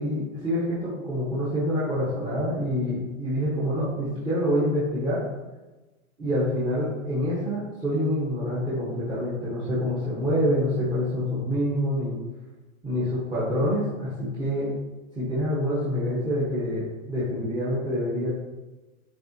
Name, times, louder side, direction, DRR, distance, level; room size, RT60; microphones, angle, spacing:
voice 1, 0.0-5.2 6.2-12.2 12.8-14.7 15.1-18.3, equal, 10° right, -10 dB, 1.2 m, -26 dB
10.5 x 3.9 x 2.9 m, 1.1 s
hypercardioid pair, 160°, 42 cm